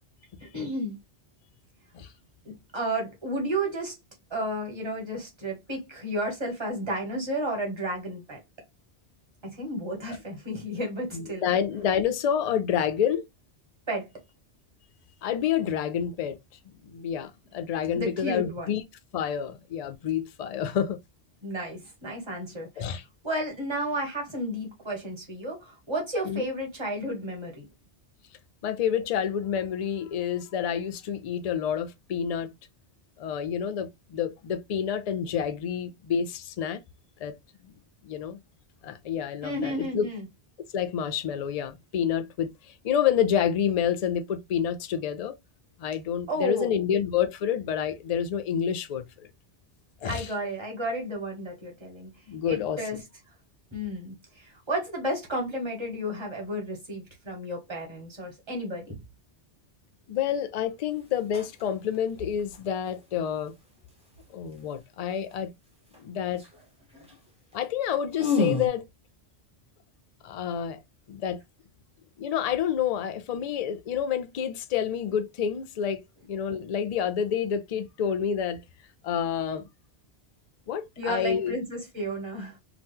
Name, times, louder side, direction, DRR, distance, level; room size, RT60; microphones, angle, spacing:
voice 1, 0.4-0.9 2.7-4.0 4.3-8.4 9.4-11.4 13.9-14.1 17.9-18.8 21.4-22.9 23.2-27.7 39.4-40.2 46.3-46.8 50.1-52.1 52.5-53.0 53.7-59.0 81.0-82.6, right 1 dB, 25° right, 1.2 m, -32 dB
voice 2, 11.1-13.3 15.2-16.4 16.8-18.8 19.1-21.0 22.8-23.0 26.2-26.5 28.6-32.5 33.2-36.8 37.2-37.3 37.6-37.7 38.0-38.4 38.8-40.1 40.7-45.4 45.8-49.3 50.0-50.3 52.3-53.0 60.1-63.5 64.3-65.5 66.0-66.4 67.5-68.9 70.2-70.8 71.1-71.4 72.2-78.6 79.0-79.7 80.7-81.6, left 8 dB, 60° left, 0.4 m, -28 dB
sound 1, 60.3-60.5 61.1-61.6 61.9-62.6 65.9-66.0 66.3-66.6 66.9-67.1 67.5-67.6 67.8-68.7, left 4 dB, 5° right, 0.8 m, -29 dB
2.9 x 2.1 x 3.5 m
omnidirectional pair, 1.1 m